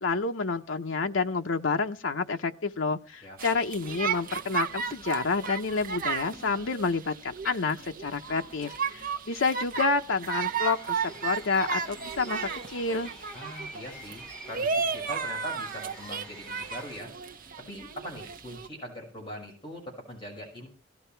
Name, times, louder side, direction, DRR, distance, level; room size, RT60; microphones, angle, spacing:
voice 1, 0.0-11.0 11.2-12.4 12.7-13.1, left 4 dB, 85° left, 5 dB, 0.8 m, -29 dB
sound 1, 3.4-18.7, right 6 dB, 45° right, 0.9 m, -34 dB
sound 2, 10.3-17.0, right 1 dB, 5° left, 2.2 m, -47 dB
voice 2, 13.3-17.1 17.7-20.7, equal, 25° left, -1 dB, 6.0 m, -41 dB
17.5 x 13.0 x 4.5 m, 0.38 s
head